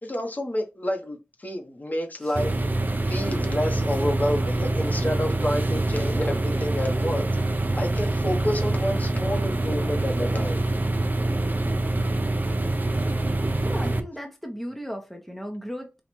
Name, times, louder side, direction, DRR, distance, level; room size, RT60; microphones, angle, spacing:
voice 1, 0.0-2.6 3.1-7.3 7.8-10.6, left 1 dB, 40° left, 1.0 m, -29 dB
sound 1, 2.3-14.0, right 2 dB, 45° right, 0.6 m, -25 dB
voice 2, 13.6-15.9, equal, 5° left, 1.0 m, -36 dB
4.3 x 2.4 x 4.4 m
wide cardioid pair, 60°, 4 cm